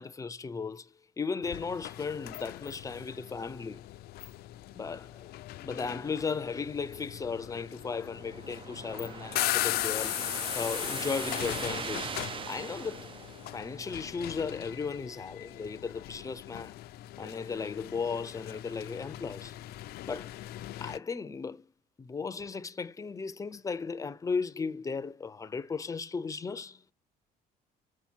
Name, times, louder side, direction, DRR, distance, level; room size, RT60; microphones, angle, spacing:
voice 1, 0.0-3.8 4.7-5.3 5.6-10.2 10.6-12.2 12.5-13.1 13.5-16.8 17.2-19.6 20.1-20.3 20.8-21.7 22.0-26.9, left 5 dB, 20° left, 0.6 m, -36 dB
sound 1, 1.4-21.0, left 15 dB, 70° left, 0.5 m, -39 dB
sound 2, 7.6-14.1, right 6 dB, 30° right, 0.4 m, -41 dB
7.1 x 4.9 x 4.5 m
cardioid pair, 110°, 17 cm